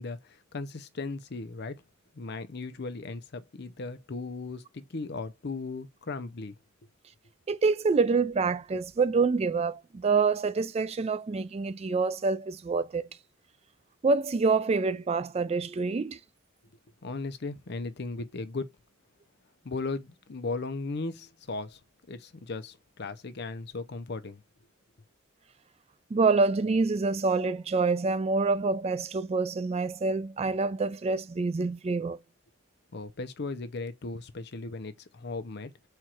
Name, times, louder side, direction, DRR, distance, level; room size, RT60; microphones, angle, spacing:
voice 1, 0.0-1.8 2.1-6.5 17.0-18.7 19.6-21.8 22.1-24.4 32.9-35.7, left 3 dB, 55° left, 0.6 m, -37 dB
voice 2, 7.5-13.1 14.0-16.2 26.1-32.2, right 4 dB, 30° right, 0.3 m, -26 dB
4.5 x 2.4 x 4.3 m
head